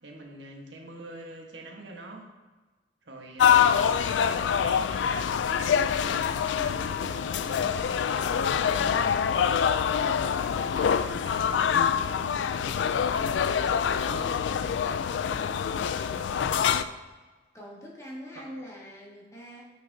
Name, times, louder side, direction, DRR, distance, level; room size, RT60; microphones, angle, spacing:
voice 1, 0.0-2.3 3.0-5.1 5.5-12.6 13.1-14.3 15.1-15.5 16.2-16.3 18.4-18.5, right 1 dB, 75° right, 1 dB, 1.3 m, -45 dB
sound 1, 3.4-16.8, left 7 dB, 75° left, 0.3 m, -25 dB
voice 2, 15.2-15.7 16.1-16.7 17.5-19.6, equal, 15° left, -4 dB, 1.7 m, -44 dB
9.2 x 5.7 x 2.7 m, 1.3 s
head